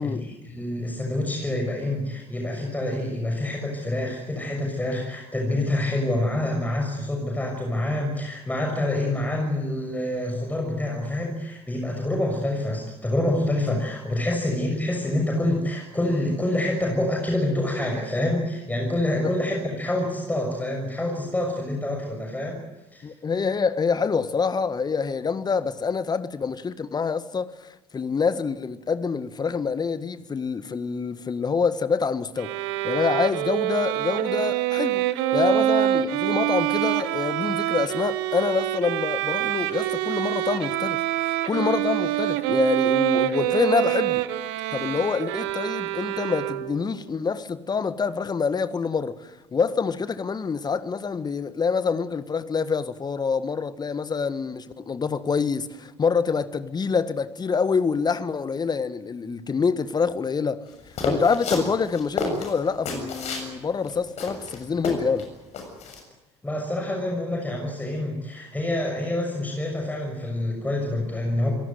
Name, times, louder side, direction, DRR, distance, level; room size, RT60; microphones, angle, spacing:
voice 1, 0.0-22.6 22.9-23.1 66.4-71.5, left 1 dB, 10° left, 6.5 m, -27 dB
voice 2, 23.0-35.1 35.3-44.2 44.7-60.7 61.0-65.3, left 5 dB, 30° left, 1.6 m, -26 dB
Bowed string instrument, 32.4-46.9, right 13 dB, 65° right, 1.3 m, -25 dB
sound 1, 61.0-63.5 63.9-64.0 64.2-65.2 65.5-66.0, left 3 dB, 50° left, 7.0 m, -30 dB
27.0 x 18.0 x 9.4 m
figure-of-eight pair, 55°, 14 cm